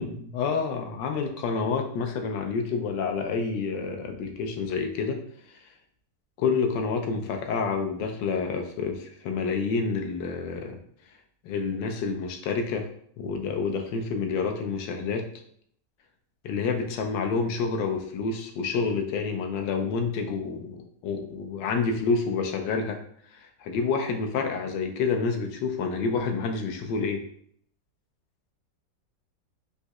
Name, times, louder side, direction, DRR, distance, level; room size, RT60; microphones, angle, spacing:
voice 1, 0.0-5.2 6.4-10.8 11.4-12.9 13.2-15.3 16.4-23.0 23.3-27.2, left 4 dB, 85° left, 4 dB, 1.3 m, -28 dB
4.0 x 2.6 x 2.3 m, 0.64 s
omnidirectional pair, 1.9 m